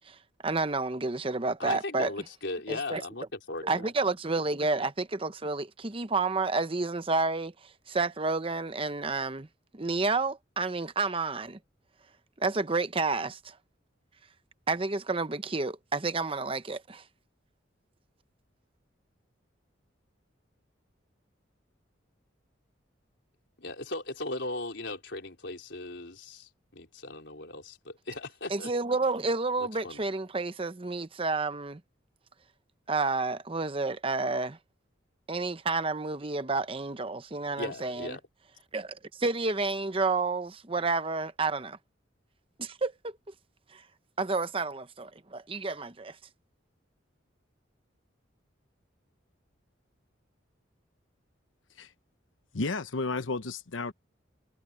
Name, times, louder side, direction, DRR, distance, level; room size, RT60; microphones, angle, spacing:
voice 1, 0.1-2.1 2.7-3.0 3.6-9.5 9.7-11.6 12.4-13.6 14.7-17.0 28.5-31.8 32.9-34.6 35.3-38.2 38.7-41.8 42.6-43.2 43.7-43.8 44.2-46.2, right 3 dB, 30° right, 0.8 m, -30 dB
voice 2, 1.6-3.9 23.6-28.7 29.6-30.0 37.6-38.2, left 2 dB, 65° left, 4.7 m, -38 dB
voice 3, 52.5-53.9, left 3 dB, 85° left, 1.0 m, -32 dB
head